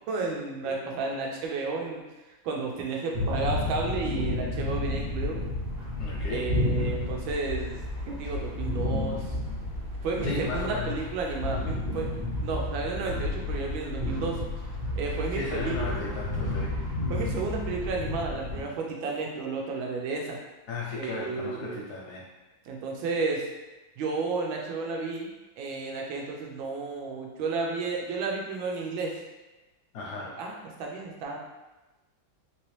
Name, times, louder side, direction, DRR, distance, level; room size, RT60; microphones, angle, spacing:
voice 1, 0.1-2.0 2.4-5.4 6.3-9.3 10.0-12.1 12.4-14.4 14.9-16.0 17.1-20.4 20.9-21.8 22.7-23.5 24.0-29.1 30.4-31.4, right 4 dB, 85° right, 0 dB, 1.4 m, -32 dB
sound 1, 3.1-18.6, left 2 dB, 55° right, 1.3 m, -31 dB
voice 2, 6.0-6.6 10.2-11.0 15.3-16.8 20.7-22.3 29.9-30.4, left 3 dB, 75° left, -3 dB, 1.0 m, -35 dB
3.3 x 3.0 x 3.1 m, 1.1 s
omnidirectional pair, 2.1 m